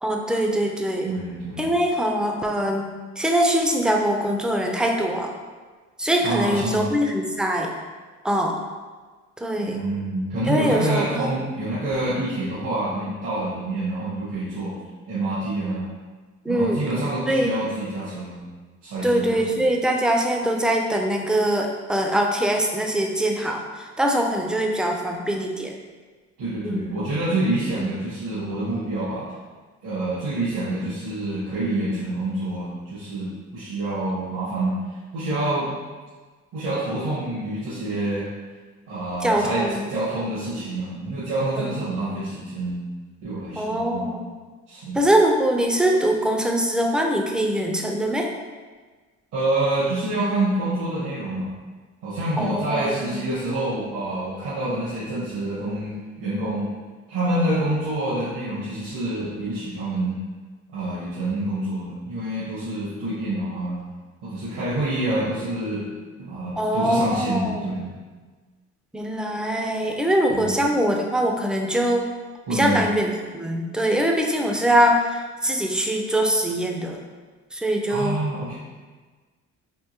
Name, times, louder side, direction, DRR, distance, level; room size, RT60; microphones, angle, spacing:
voice 1, 0.0-1.1 1.6-2.9 3.2-5.3 6.0-7.7 8.2-8.6 9.4-9.8 10.5-11.2 16.5-16.8 17.3-17.5 19.0-25.7 26.6-27.0 39.2-39.9 41.6-41.7 43.6-44.2 44.9-48.3 52.4-53.2 66.6-67.7 68.9-72.1 72.5-77.0 77.5-78.2, right 1 dB, 5° right, 1 dB, 0.4 m, -23 dB
voice 2, 1.0-1.7 6.2-6.9 9.6-14.8 15.1-15.9 16.5-18.4 18.8-19.7 26.4-29.3 29.8-34.8 35.1-35.7 36.5-38.3 38.9-42.8 43.2-44.1 44.7-45.0 49.3-51.5 52.0-56.7 57.1-60.2 60.7-63.8 64.2-65.9 66.3-67.9 70.3-70.6 72.5-72.8 77.9-78.6, right 1 dB, 85° right, -11 dB, 1.4 m, -27 dB
3.6 x 2.5 x 2.8 m, 1.4 s
cardioid pair, 90°, 30 cm